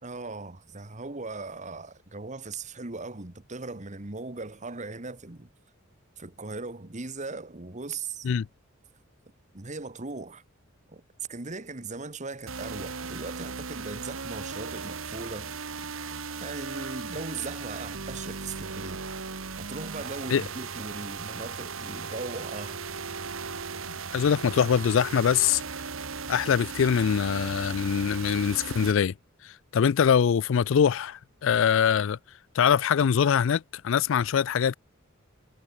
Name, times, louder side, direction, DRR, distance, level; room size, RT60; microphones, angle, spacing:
voice 1, 0.0-5.5 6.2-8.3 9.5-10.4 10.9-11.0 11.3-15.5 16.4-19.0 19.6-22.8, right 3 dB, 35° right, 1.6 m, -38 dB
sound 1, 12.5-28.9, right 5 dB, 80° right, 1.8 m, -37 dB
voice 2, 23.9-25.6 26.3-29.1 29.4-32.2 32.5-34.8, left 7 dB, 70° left, 0.4 m, -23 dB
head